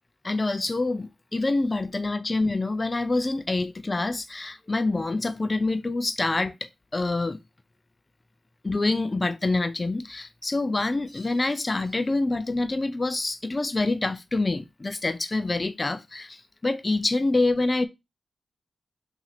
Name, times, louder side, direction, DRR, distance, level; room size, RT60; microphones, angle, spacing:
voice 1, 0.2-7.4 8.6-17.9, left 2 dB, 35° left, 0.5 m, -26 dB
2.8 x 2.7 x 3.9 m
cardioid pair, 45°, 0 cm